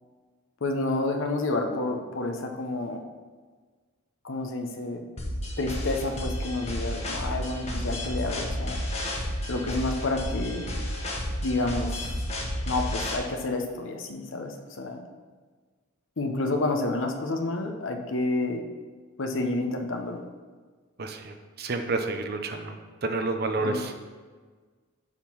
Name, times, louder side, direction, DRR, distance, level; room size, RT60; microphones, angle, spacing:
voice 1, 0.6-3.0 4.2-5.0 5.6-8.8 9.5-10.7 11.4-11.9 12.7-15.0 16.2-18.6 19.2-20.2 23.6-23.8, left 2 dB, 65° left, 4 dB, 0.8 m, -29 dB
sound 1, 5.2-13.2, left 1 dB, 30° left, 1.1 m, -31 dB
voice 2, 21.0-22.7 23.0-23.9, right 3 dB, 50° right, 6 dB, 0.6 m, -29 dB
7.2 x 3.7 x 5.9 m, 1.5 s
head